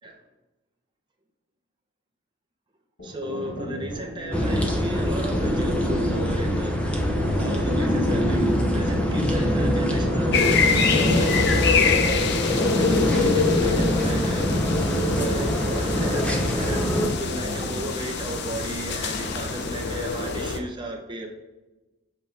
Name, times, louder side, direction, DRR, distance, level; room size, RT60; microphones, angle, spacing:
sound 1, 3.0-17.7, equal, 85° left, 2.1 m, -36 dB
voice 1, 3.0-6.8 7.4-8.4 8.7-12.4 12.8-14.5 15.2-21.3, right 1 dB, 20° right, 2 dB, 0.9 m, -35 dB
sound 2, 4.3-17.1, equal, 5° left, 0.7 m, -23 dB
sound 3, 10.3-20.6, left 5 dB, 55° left, 0.6 m, -26 dB
7.8 x 4.6 x 3.4 m, 1.1 s
head